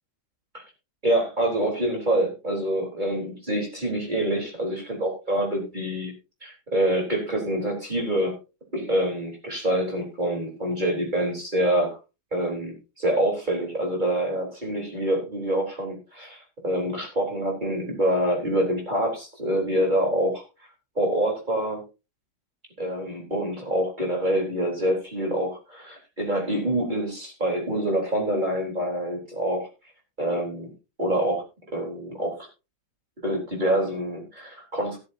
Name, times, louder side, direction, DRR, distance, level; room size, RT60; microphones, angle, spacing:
voice 1, 1.0-6.1 6.4-8.3 8.7-12.0 12.3-20.4 21.0-21.8 22.8-29.7 30.2-30.7 31.0-31.4 31.7-32.3 33.2-35.0, right 1 dB, 20° right, 0 dB, 4.1 m, -26 dB
13.5 x 13.0 x 2.8 m, 0.29 s
omnidirectional pair, 2.2 m